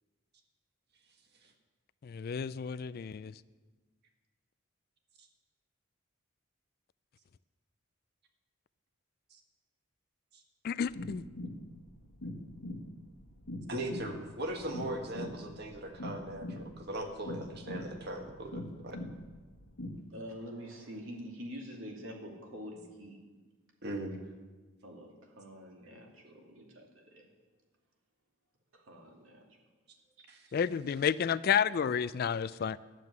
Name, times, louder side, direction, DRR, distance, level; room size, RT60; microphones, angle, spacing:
voice 1, 2.0-3.3 10.6-11.2 30.5-32.8, left 7 dB, 45° left, 16 dB, 0.3 m, -31 dB
sound 1, 10.9-20.0, left 1 dB, 80° left, 1.3 m, -43 dB
voice 2, 13.7-19.0 23.8-24.1 30.3-30.5, right 1 dB, 50° right, 4 dB, 1.6 m, -39 dB
voice 3, 20.1-23.2 24.8-27.3 28.7-29.5 30.2-30.3, equal, 75° right, 0 dB, 2.5 m, -46 dB
11.5 x 7.6 x 9.4 m, 1.3 s
head